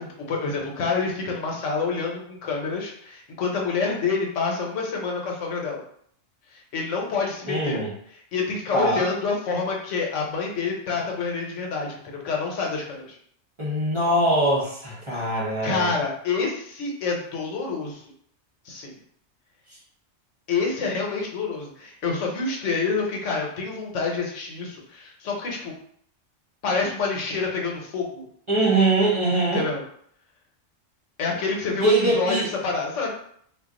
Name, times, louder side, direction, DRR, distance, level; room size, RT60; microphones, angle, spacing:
voice 1, 0.0-5.8 6.5-7.8 8.3-13.2 15.6-18.1 18.6-18.9 20.5-25.7 26.6-28.2 29.5-29.8 31.2-33.1, left 4 dB, 75° left, 0 dB, 1.0 m, -27 dB
voice 2, 7.5-7.9 8.7-9.1 13.6-15.9 28.5-29.6 31.8-32.5, right 2 dB, 30° right, -7 dB, 0.7 m, -22 dB
2.4 x 2.2 x 3.6 m, 0.64 s
omnidirectional pair, 1.3 m